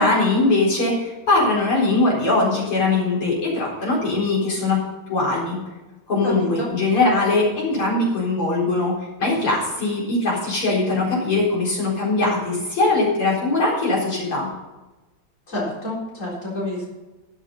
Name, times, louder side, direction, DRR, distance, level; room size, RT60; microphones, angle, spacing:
voice 1, 0.0-4.8 5.1-5.6 6.1-8.9 9.2-14.5, left 2 dB, 85° left, -5 dB, 5.3 m, -21 dB
voice 2, 6.2-6.7 15.5-16.8, left 1 dB, 35° left, -5 dB, 4.5 m, -28 dB
13.0 x 7.6 x 5.5 m, 1.1 s
omnidirectional pair, 2.3 m